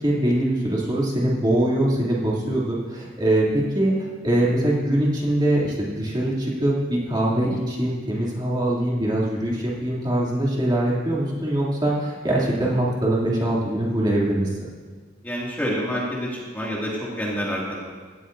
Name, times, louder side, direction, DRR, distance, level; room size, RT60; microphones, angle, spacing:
voice 1, 0.0-14.7, right 1 dB, 25° right, -5 dB, 2.7 m, -23 dB
voice 2, 15.2-17.8, equal, 10° left, -6 dB, 2.3 m, -28 dB
17.5 x 13.5 x 2.7 m, 1.5 s
head